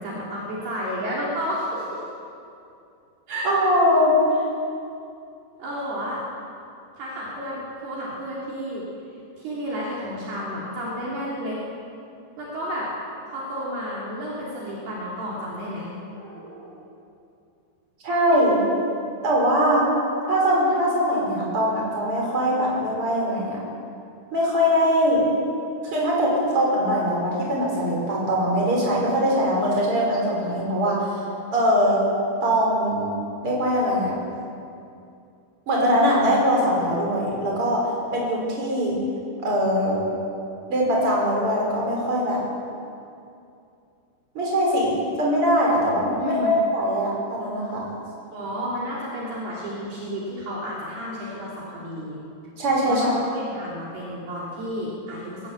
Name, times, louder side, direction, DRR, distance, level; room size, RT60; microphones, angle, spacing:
voice 1, 0.0-2.0 3.3-3.5 5.6-6.2 7.0-8.9 9.4-11.6 12.4-12.9 13.3-16.9 46.2-46.6 48.3-52.2 52.9-55.5, equal, 55° right, -6 dB, 5.2 m, -31 dB
voice 2, 3.4-4.2 18.0-18.6 19.2-19.9 20.3-23.6 24.3-25.2 25.9-31.1 31.5-32.0 32.4-33.2 33.4-34.2 35.7-39.0 39.4-40.0 40.7-42.4 44.3-47.9 52.6-53.1, equal, 25° right, -3 dB, 6.4 m, -22 dB
21.0 x 20.5 x 8.4 m, 2.6 s
omnidirectional pair, 5.6 m